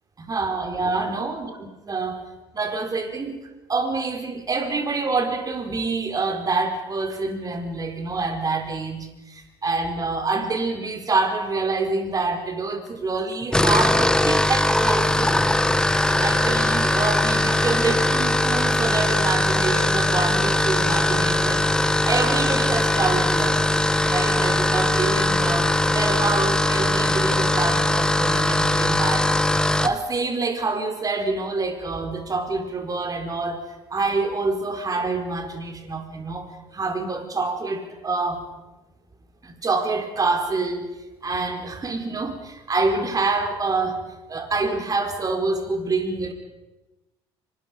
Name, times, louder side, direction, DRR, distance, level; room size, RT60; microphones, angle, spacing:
voice 1, 0.2-2.2 2.5-3.4 3.7-15.3 15.8-21.7 22.0-29.3 29.8-33.6 33.9-38.4 39.4-40.9 41.2-44.0 44.3-46.3, right 3 dB, 30° right, 6 dB, 4.4 m, -26 dB
sound 1, 13.4-30.0, left 1 dB, 5° left, 1.4 m, -20 dB
26.0 x 25.0 x 5.2 m, 1.0 s
figure-of-eight pair, 60°, 13 cm